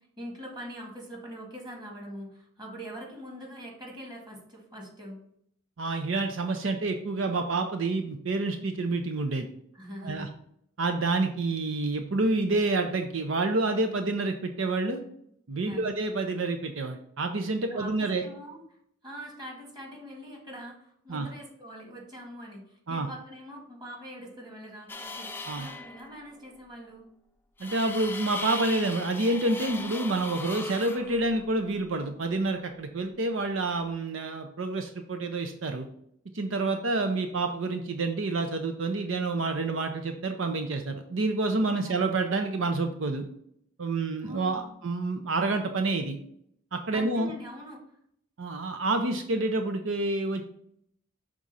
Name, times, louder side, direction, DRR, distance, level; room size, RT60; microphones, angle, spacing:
voice 1, 0.2-5.2 9.7-10.3 15.7-15.9 17.7-18.6 19.0-27.1 41.8-42.1 44.2-44.7 46.9-47.8, equal, 20° right, -1 dB, 1.9 m, -43 dB
voice 2, 5.8-9.5 10.0-10.3 10.8-15.0 15.5-18.2 21.1-21.3 22.9-23.1 25.5-25.7 27.6-35.9 36.3-43.2 43.8-46.2 46.7-47.3 48.4-50.4, right 2 dB, 75° right, 6 dB, 0.6 m, -28 dB
sound 1, 24.9-26.2 27.6-31.9, left 3 dB, 10° left, 0.5 m, -39 dB
6.2 x 3.7 x 5.4 m, 0.69 s
head